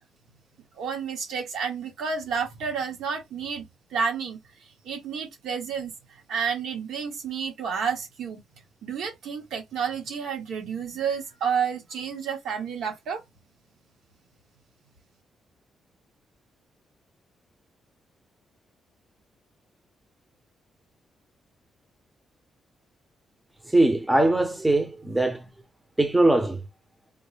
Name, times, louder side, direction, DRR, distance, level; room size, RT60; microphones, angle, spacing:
voice 1, 0.8-4.4 4.8-8.4 8.8-13.2, right 6 dB, 80° right, 1.4 m, -30 dB
voice 2, 23.7-25.5 26.0-26.6, right 2 dB, 10° right, 0.6 m, -21 dB
4.3 x 2.1 x 3.3 m
cardioid pair, 170°, 0 cm